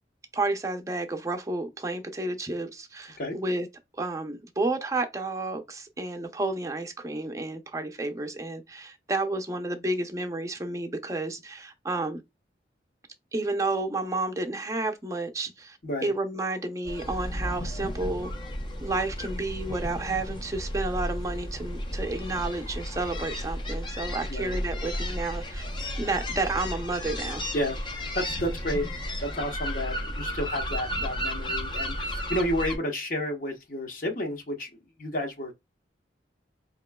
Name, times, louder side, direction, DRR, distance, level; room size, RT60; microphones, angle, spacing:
voice 1, 0.3-3.7 3.9-12.2 13.3-18.3 18.8-25.7 26.0-27.5, right 2 dB, 20° right, 0.6 m, -31 dB
sound 1, 16.8-32.8, equal, 25° left, 0.5 m, -33 dB
voice 2, 27.5-28.9 29.2-35.5, equal, 50° left, 1.0 m, -31 dB
4.8 x 3.0 x 2.2 m
head